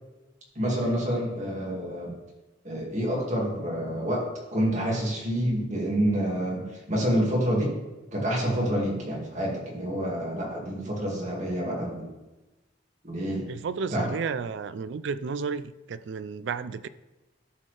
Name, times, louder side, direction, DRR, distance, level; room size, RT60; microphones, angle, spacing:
voice 1, 0.6-2.2 2.6-7.8 8.1-12.1 13.0-13.5 13.9-14.1, equal, 40° right, -3 dB, 2.1 m, -28 dB
voice 2, 13.5-16.9, right 5 dB, 65° right, 15 dB, 0.4 m, -32 dB
12.5 x 4.3 x 3.3 m, 1.1 s
head